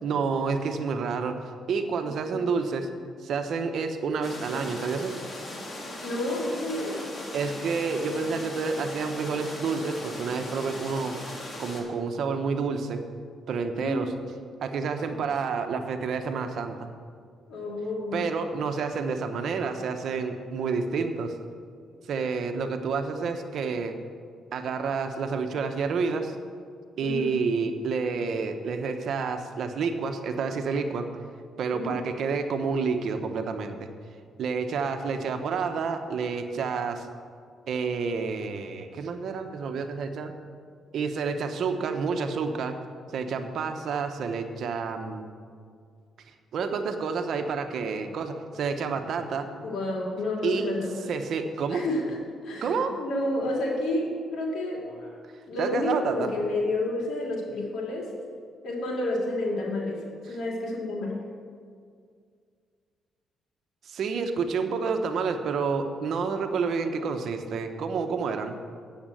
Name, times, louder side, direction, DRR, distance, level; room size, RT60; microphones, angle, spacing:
voice 1, 0.0-1.4 1.7-2.9 3.2-5.2 7.3-11.1 11.6-13.0 13.5-14.1 14.6-16.9 18.1-21.3 22.1-24.0 24.5-26.3 27.0-31.1 31.6-33.9 34.4-37.1 37.7-40.3 40.9-42.8 43.1-45.3 46.5-49.5 50.4-50.7 51.1-51.8 52.6-52.9 55.6-56.3 63.8-68.6, right 5 dB, 65° right, 7 dB, 0.9 m, -29 dB
sound 1, 4.2-11.8, left 1 dB, 35° left, 2.3 m, -39 dB
voice 2, 6.0-7.0 13.7-14.1 17.5-18.2 27.0-27.4 31.7-32.0 49.6-51.1 51.7-55.2 55.5-58.1 58.6-61.2, left 1 dB, 65° left, -2 dB, 3.0 m, -30 dB
8.8 x 7.4 x 7.7 m, 2.1 s
cardioid pair, 90°, 0 cm